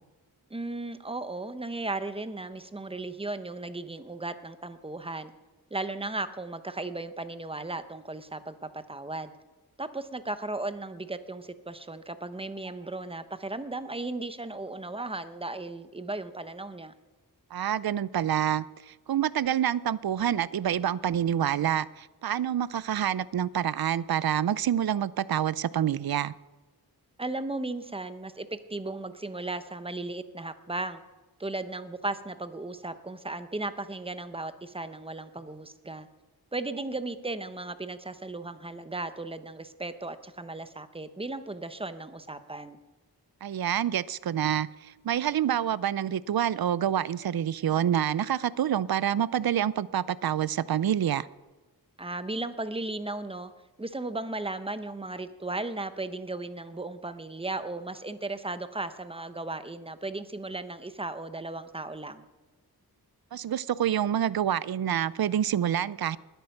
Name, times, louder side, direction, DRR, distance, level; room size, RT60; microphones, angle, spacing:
voice 1, 0.5-5.3 5.7-9.3 9.8-16.9 27.2-31.0 31.4-36.1 36.5-42.8 52.0-53.5 53.8-62.2, right 2 dB, 15° right, 0.8 m, -36 dB
voice 2, 17.5-26.3 43.4-51.3 63.3-66.2, right 10 dB, 65° right, 0.5 m, -27 dB
20.0 x 9.2 x 6.6 m
wide cardioid pair, 115°, 38 cm